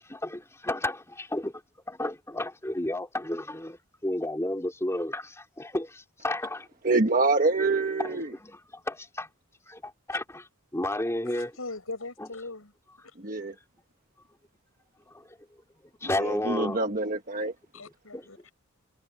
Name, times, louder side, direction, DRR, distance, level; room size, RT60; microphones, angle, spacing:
voice 1, 0.0-1.6 1.9-6.7 8.0-8.6 8.8-9.3 9.7-10.5 10.7-11.5 12.2-12.3 15.1-15.4 16.0-16.8 18.1-18.5, left 1 dB, 15° left, 3.2 m, -32 dB
voice 2, 6.8-8.3 13.2-13.5 16.2-17.5, right 3 dB, 40° right, 1.3 m, -25 dB
voice 3, 11.3-12.7 17.7-18.4, left 3 dB, 80° left, 7.0 m, -39 dB
head